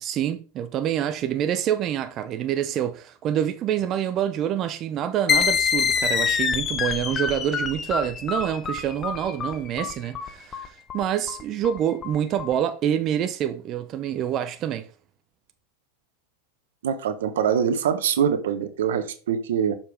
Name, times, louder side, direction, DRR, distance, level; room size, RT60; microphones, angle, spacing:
voice 1, 0.0-14.9, right 10 dB, 40° right, 0.7 m, -26 dB
sound 1, 5.3-12.5, left 6 dB, 30° left, 0.8 m, -26 dB
voice 2, 16.8-19.8, right 8 dB, 80° right, 1.0 m, -24 dB
6.7 x 5.7 x 3.4 m
hypercardioid pair, 110°, 0 cm